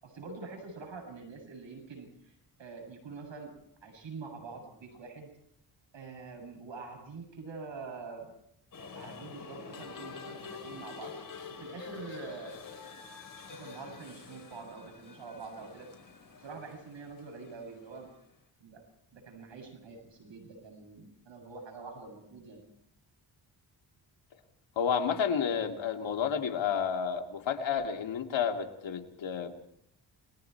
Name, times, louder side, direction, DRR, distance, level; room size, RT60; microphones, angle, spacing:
voice 1, 0.0-2.3 2.6-5.3 5.9-8.3 8.8-11.2 11.5-12.6 13.3-15.9 16.4-18.1 18.6-18.8 19.1-22.6, right 4 dB, 70° right, 4 dB, 7.9 m, -45 dB
sound 1, 8.7-18.2, left 5 dB, 45° left, 4.7 m, -47 dB
voice 2, 24.8-29.5, left 7 dB, 75° left, 3 dB, 2.5 m, -31 dB
30.0 x 21.0 x 4.6 m, 0.74 s
cardioid pair, 95°, 46 cm